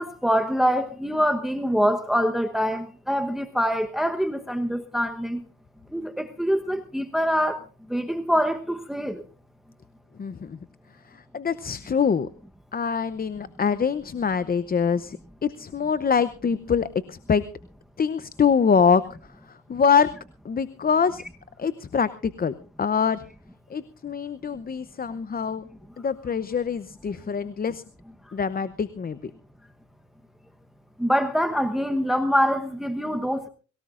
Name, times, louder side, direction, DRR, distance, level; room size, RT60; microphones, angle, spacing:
voice 1, 0.0-5.4 5.9-7.6 7.9-9.2 31.0-33.5, equal, ahead, 7 dB, 1.0 m, -24 dB
voice 2, 10.2-10.6 11.3-12.3 12.7-17.4 18.0-19.0 19.7-20.1 20.4-21.2 21.6-23.2 23.7-25.6 26.0-27.8 28.3-29.2, left 6 dB, 30° left, 14 dB, 0.7 m, -24 dB
23.5 x 17.5 x 2.5 m, 0.36 s
cardioid pair, 90°, 30 cm